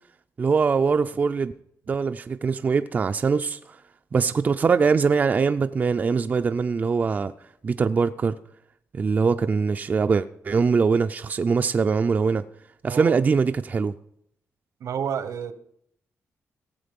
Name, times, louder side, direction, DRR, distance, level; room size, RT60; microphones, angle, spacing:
voice 1, 0.4-1.5 1.9-3.8 4.1-7.3 7.6-8.3 8.9-12.4 12.8-13.9, right 5 dB, 35° right, 0.4 m, -22 dB
voice 2, 12.9-13.2 14.8-15.5, right 8 dB, 75° right, 0.9 m, -30 dB
17.0 x 7.4 x 5.2 m
wide cardioid pair, 140°, 5 cm